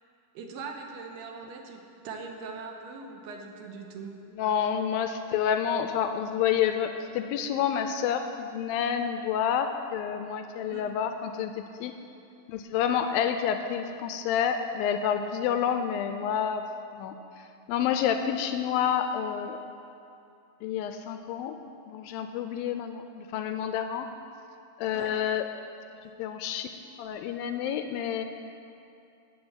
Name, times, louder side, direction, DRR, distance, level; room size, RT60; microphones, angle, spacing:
voice 1, 0.3-4.2 10.6-11.0 24.9-25.2, right 4 dB, 85° right, 3 dB, 3.0 m, -41 dB
voice 2, 4.4-11.9 12.5-16.7 16.9-17.2 17.7-19.6 20.6-21.6 21.9-24.1 24.8-25.5 26.2-26.7 27.0-28.2, left 8 dB, 85° left, 7 dB, 2.1 m, -29 dB
10.5 x 7.9 x 8.7 m, 2.6 s
omnidirectional pair, 4.5 m